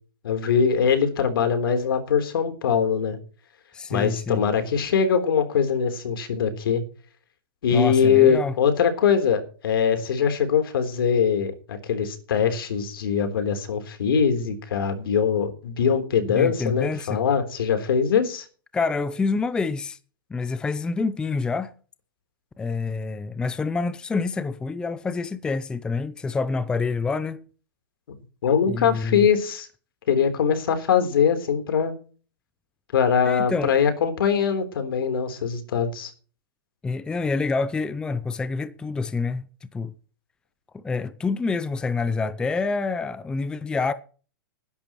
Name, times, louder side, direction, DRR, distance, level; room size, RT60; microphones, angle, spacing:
voice 1, 0.2-3.2 3.9-6.8 7.6-18.5 28.4-29.7 30.1-31.9 32.9-36.1, left 7 dB, 80° left, 3.7 m, -22 dB
voice 2, 3.7-4.5 7.7-8.5 16.3-17.2 18.7-20.0 20.3-21.7 22.6-27.4 28.6-29.3 33.2-33.7 36.8-39.5 39.7-39.9 40.7-43.9, left 4 dB, 5° left, 0.5 m, -27 dB
19.5 x 11.0 x 3.1 m
hypercardioid pair, 155°, 12 cm